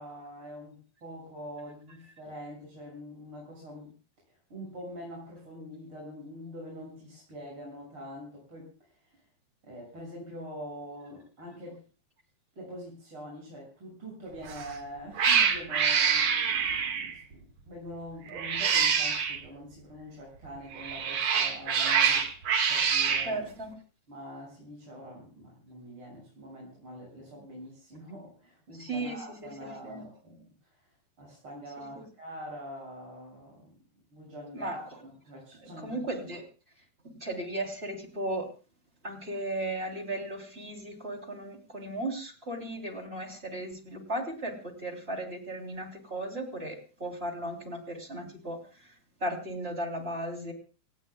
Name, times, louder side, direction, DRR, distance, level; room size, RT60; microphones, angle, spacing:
voice 1, 0.0-3.9 4.3-9.3 9.6-11.8 12.6-23.5 24.1-33.8 34.1-36.0, equal, 30° right, -3 dB, 7.7 m, -44 dB
Cat, 14.4-14.7 15.2-17.2 18.3-19.4 20.7-23.3, right 7 dB, 50° right, 2.8 m, -26 dB
voice 2, 23.2-23.7 28.7-30.0 34.5-34.8 35.8-36.4 37.0-38.5 39.0-48.9 49.2-50.5, right 1 dB, 15° right, 2 dB, 3.4 m, -36 dB
28.5 x 18.5 x 2.4 m, 0.35 s
omnidirectional pair, 4.6 m